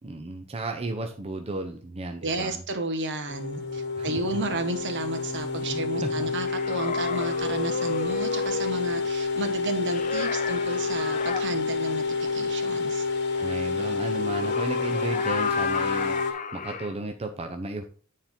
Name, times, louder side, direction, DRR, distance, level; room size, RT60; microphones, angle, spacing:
voice 1, 0.0-2.6 4.0-4.4 5.7-6.3 13.4-17.8, right 2 dB, 30° right, 4 dB, 0.7 m, -34 dB
voice 2, 2.2-12.0 12.3-13.1, right 2 dB, 55° right, 7 dB, 1.2 m, -32 dB
sound 1, 3.3-16.3, left 4 dB, 55° left, 1.2 m, -29 dB
sound 2, 6.5-8.9 9.9-11.4 14.0-16.9, left 5 dB, 35° left, 0.6 m, -33 dB
9.4 x 4.4 x 3.7 m, 0.42 s
head